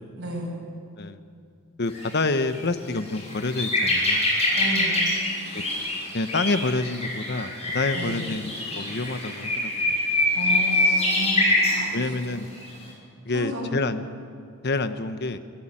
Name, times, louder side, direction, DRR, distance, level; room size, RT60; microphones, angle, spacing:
voice 1, 0.2-0.5 4.5-5.0 7.9-8.3 10.3-11.9 12.3-12.4 13.3-13.7, equal, 55° right, -1 dB, 7.2 m, -33 dB
voice 2, 1.8-4.3 5.5-5.6 6.1-10.0 11.9-12.5 13.3-14.0 14.6-15.4, left 3 dB, 50° left, 10 dB, 1.1 m, -28 dB
sound 1, 1.9-2.1 2.5-2.6 2.9-11.8 12.5-12.7, left 1 dB, 30° left, 6.3 m, -25 dB
26.0 x 15.0 x 8.9 m, 2.3 s
head